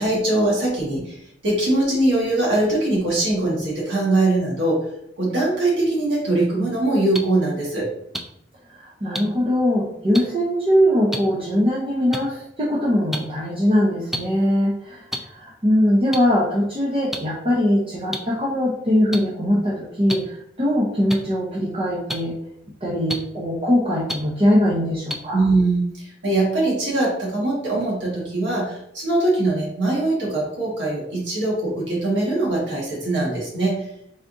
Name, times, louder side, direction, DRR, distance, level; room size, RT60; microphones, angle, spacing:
voice 1, 0.0-4.8 5.2-7.9 25.3-33.7, right 2 dB, 80° right, -5 dB, 1.5 m, -22 dB
sound 1, 7.1-7.2 8.1-8.2 9.1-9.2 10.1-10.2 11.1-11.2 12.1-12.2 13.1-13.2 14.1-14.2 15.1-15.2 16.1-16.2 17.1-17.2 18.1-18.2 19.1-19.2 20.1-20.2 21.1-21.2 22.1-22.2 23.1-23.2 24.1-24.2 25.1-25.2, equal, ahead, 0.3 m, -26 dB
voice 2, 8.8-22.3 22.8-25.4, equal, 30° right, -5 dB, 0.8 m, -21 dB
4.2 x 3.5 x 2.6 m, 0.74 s
head